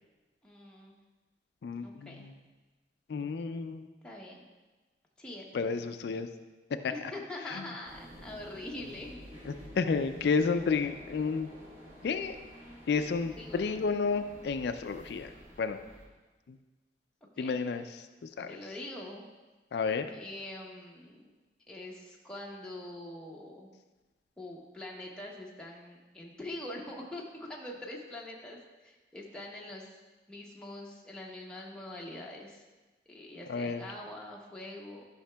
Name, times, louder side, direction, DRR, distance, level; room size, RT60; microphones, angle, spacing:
voice 1, 0.4-0.9 1.8-2.3 4.0-4.5 5.2-5.5 6.9-9.2 13.3-13.9 17.4-17.6 18.5-19.2 20.1-21.3 21.7-23.7 24.4-29.9 30.3-32.6 33.1-35.1, left 1 dB, 5° left, -3 dB, 0.7 m, -44 dB
voice 2, 1.6-2.3 3.1-3.8 5.5-6.3 9.5-11.5 12.0-12.4 12.9-15.3 15.6-15.8 17.4-18.0 18.4-18.5 19.7-20.1 33.5-33.9, left 5 dB, 65° left, 8 dB, 0.3 m, -31 dB
sound 1, 7.8-16.1, equal, 40° right, 1.3 m, -51 dB
11.5 x 5.7 x 2.2 m, 1.2 s
head